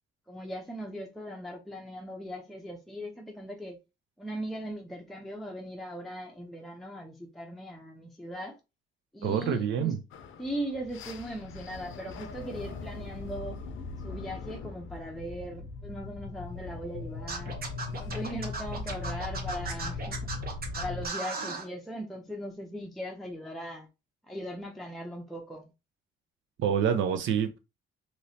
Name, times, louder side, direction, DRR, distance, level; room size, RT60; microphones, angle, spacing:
voice 1, 0.3-3.8 4.2-8.6 9.1-9.9 10.4-13.6 14.0-17.6 18.0-20.3 20.7-23.9 24.3-25.7, equal, ahead, 0.6 m, -39 dB
voice 2, 9.2-10.0 26.6-27.6, right 8 dB, 75° right, 0.6 m, -27 dB
sound 1, 10.1-21.1, left 4 dB, 80° left, 0.6 m, -39 dB
Scratching (performance technique), 17.3-21.7, right 4 dB, 50° right, 1.0 m, -36 dB
3.1 x 2.8 x 2.7 m
cardioid pair, 90°, 20 cm